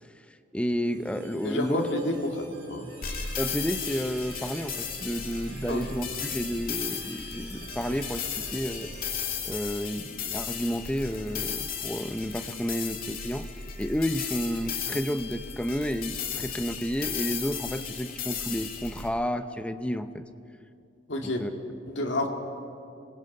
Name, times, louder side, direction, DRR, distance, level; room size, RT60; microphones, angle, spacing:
voice 1, 0.5-1.9 3.4-8.9 9.5-13.5 13.8-20.2 21.2-21.5, equal, 5° left, 10 dB, 0.7 m, -31 dB
sound 1, 0.8-9.7, right 3 dB, 70° right, 4.3 m, -47 dB
voice 2, 1.4-2.9 5.7-5.8 21.1-21.5 21.9-22.3, left 1 dB, 70° left, 1 dB, 2.3 m, -29 dB
sound 2, 3.0-19.1, left 7 dB, 50° left, 2.2 m, -35 dB
26.0 x 20.0 x 5.5 m, 2.5 s
head